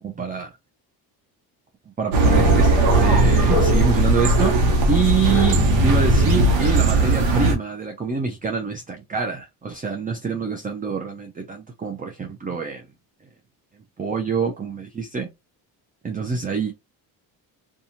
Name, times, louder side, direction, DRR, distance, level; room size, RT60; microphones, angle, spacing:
voice 1, 0.0-0.5 2.0-4.6 4.9-12.9 13.7-15.3 16.0-16.7, right 5 dB, 20° right, 0.5 m, -26 dB
sound 1, 2.1-7.6, right 2 dB, 70° right, 1.0 m, -17 dB
2.7 x 2.4 x 2.6 m
supercardioid pair, 65°, 48 cm